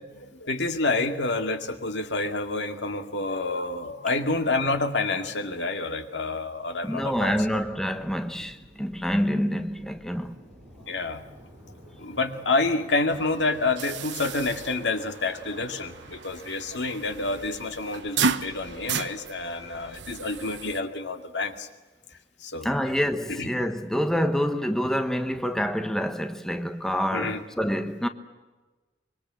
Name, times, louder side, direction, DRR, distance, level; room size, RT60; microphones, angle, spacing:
voice 1, 0.1-7.4 10.9-11.2 12.0-21.7 22.4-22.7 23.3-23.5 27.1-27.4, left 3 dB, 75° left, 2.2 m, -28 dB
sound 1, 6.6-20.4, equal, 20° right, 7.1 m, -52 dB
voice 2, 6.8-10.4 22.6-28.1, equal, 5° left, 1.1 m, -27 dB
sound 2, 13.1-20.8, right 5 dB, 80° right, 1.0 m, -34 dB
25.0 x 23.0 x 7.6 m
head